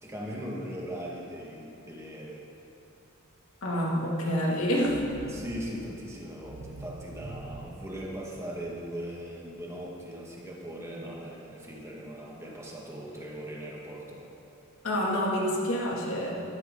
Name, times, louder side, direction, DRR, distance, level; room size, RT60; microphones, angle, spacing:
voice 1, 0.0-2.5 5.3-14.2, equal, 15° right, -3 dB, 1.8 m, -39 dB
voice 2, 3.6-5.1 14.8-16.4, equal, 80° left, -3 dB, 2.5 m, -27 dB
sound 1, 4.8-8.8, right 2 dB, 85° right, 0.9 m, -45 dB
14.0 x 13.0 x 3.9 m, 2.8 s
head